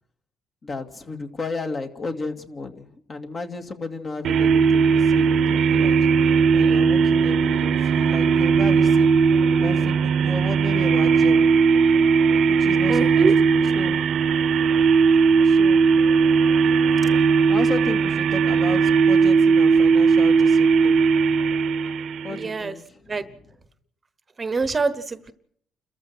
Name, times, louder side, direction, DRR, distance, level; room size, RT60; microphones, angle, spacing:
voice 1, 0.6-5.9 6.5-9.1 9.6-11.7 12.5-14.2 15.2-16.1 17.5-21.1 22.2-23.3, left 3 dB, 40° left, 4 dB, 2.5 m, -34 dB
sound 1, 4.2-22.5, right 5 dB, 70° right, 1.0 m, -18 dB
voice 2, 12.9-13.3 22.3-22.7 23.1-23.2 24.4-25.3, right 4 dB, 30° right, 13 dB, 1.1 m, -25 dB
29.5 x 14.0 x 6.2 m, 0.67 s
cardioid pair, 100°, 0 cm